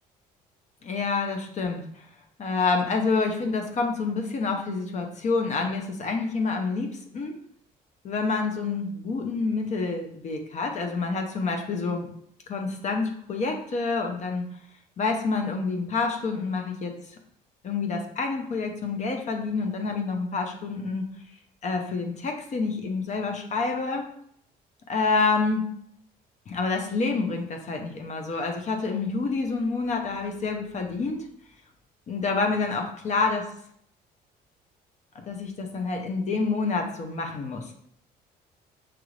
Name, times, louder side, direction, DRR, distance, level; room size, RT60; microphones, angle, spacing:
voice 1, 0.8-2.0 2.4-6.9 7.1-7.3 8.0-12.1 12.5-14.4 15.0-16.9 17.6-21.1 21.6-24.0 24.9-25.7 26.5-31.2 32.1-33.5 35.1-37.7, left 4 dB, 45° left, 4 dB, 0.7 m, -28 dB
5.9 x 2.5 x 3.2 m, 0.68 s
cardioid pair, 110°, 17 cm